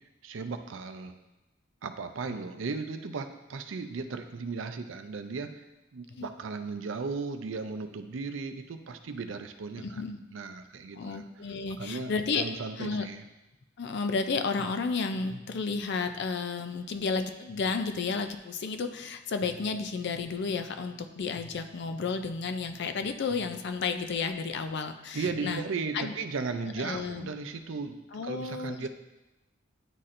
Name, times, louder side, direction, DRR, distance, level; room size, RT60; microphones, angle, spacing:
voice 1, 0.2-1.1 1.8-5.6 5.9-10.0 10.3-11.2 11.8-12.1 12.4-13.2 25.1-28.0 28.2-28.9, right 4 dB, 70° right, 8 dB, 0.5 m, -36 dB
voice 2, 9.8-10.2 10.9-12.4 12.8-13.1 13.8-25.6 25.9-26.1 26.8-27.3 28.1-28.9, left 4 dB, 60° left, 8 dB, 0.4 m, -32 dB
9.9 x 4.2 x 2.5 m, 1.0 s
head